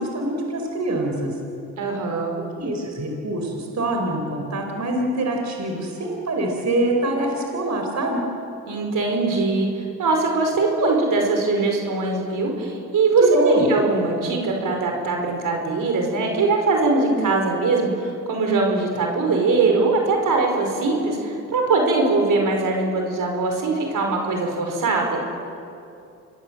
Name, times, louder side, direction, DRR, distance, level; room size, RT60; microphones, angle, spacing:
voice 1, 0.0-1.3 2.6-8.2 13.3-13.6, right 1 dB, 55° right, 2 dB, 4.9 m, -25 dB
voice 2, 1.8-2.3 8.7-25.2, right 3 dB, 70° right, 2 dB, 5.3 m, -21 dB
26.5 x 21.0 x 7.8 m, 2.6 s
supercardioid pair, 60°, 33 cm